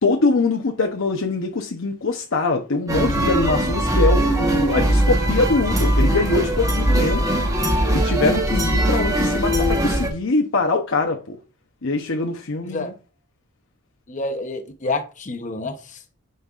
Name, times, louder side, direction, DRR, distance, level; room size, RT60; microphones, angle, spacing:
voice 1, 0.0-7.2 7.9-11.4 11.8-12.9, left 3 dB, 75° left, 0.8 m, -23 dB
sound 1, 2.9-10.1, right 1 dB, 15° right, 1.1 m, -20 dB
voice 2, 14.1-16.2, left 2 dB, 35° left, 0.8 m, -29 dB
9.4 x 5.3 x 2.5 m
head